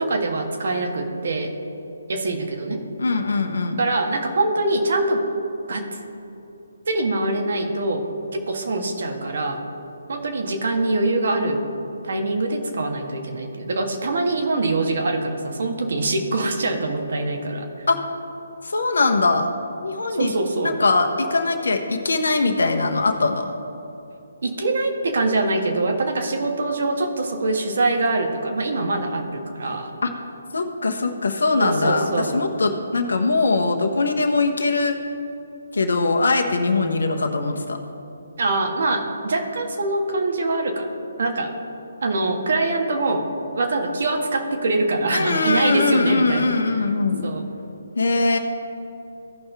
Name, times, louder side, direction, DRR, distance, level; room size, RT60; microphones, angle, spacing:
voice 1, 0.0-1.5 2.1-2.8 3.8-5.2 5.7-6.0 6.9-8.1 8.3-9.6 10.1-11.6 12.0-17.7 20.1-20.7 24.4-29.9 31.6-32.3 36.7-37.0 38.4-40.9 41.2-41.5 42.0-43.3 43.5-46.5 47.2-47.4, right 2 dB, 60° right, 4 dB, 1.5 m, -24 dB
voice 2, 3.0-3.8 17.9-18.0 18.6-19.5 19.8-20.3 20.6-23.5 30.0-30.1 30.5-35.0 35.7-37.8 45.1-47.3 48.0-48.4, left 3 dB, 75° left, 5 dB, 1.0 m, -21 dB
16.0 x 5.6 x 3.4 m, 2.9 s
figure-of-eight pair, 145°, 0 cm